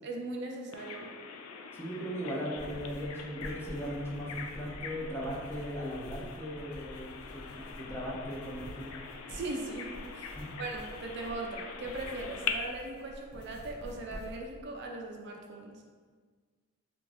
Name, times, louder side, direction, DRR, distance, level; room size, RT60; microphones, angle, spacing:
voice 1, 0.0-1.1 9.3-15.8, right 2 dB, 55° right, 1 dB, 0.4 m, -39 dB
Bird vocalization bird call bird song, 0.7-12.5, left 7 dB, 85° left, 0.3 m, -43 dB
voice 2, 1.7-8.9 10.3-10.5, equal, 10° left, -4 dB, 0.5 m, -38 dB
sound 1, 2.6-14.6, equal, 55° left, 0.7 m, -48 dB
3.4 x 2.5 x 3.2 m, 1.5 s
head